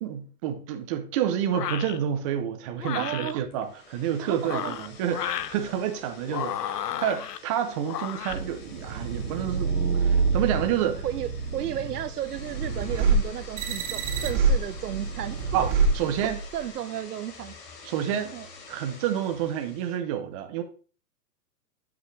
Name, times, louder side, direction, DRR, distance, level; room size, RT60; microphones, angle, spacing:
voice 1, 0.0-9.7 10.0-11.1 15.5-16.4 17.8-18.4 18.7-20.6, right 9 dB, 20° right, 0.6 m, -29 dB
sound 1, 1.5-2.0 2.8-3.3 4.3-5.6 6.3-7.4 7.9-8.4, left 10 dB, 80° left, 0.9 m, -33 dB
voice 2, 3.0-3.4 4.2-4.8 11.0-15.4 16.2-17.5 18.3-18.5, right 11 dB, 75° right, 0.9 m, -33 dB
sound 2, 3.4-20.0, left 5 dB, 40° left, 2.6 m, -48 dB
sound 3, 8.3-16.6, right 4 dB, 50° right, 2.2 m, -27 dB
11.0 x 5.9 x 3.2 m
hypercardioid pair, 155°, 48 cm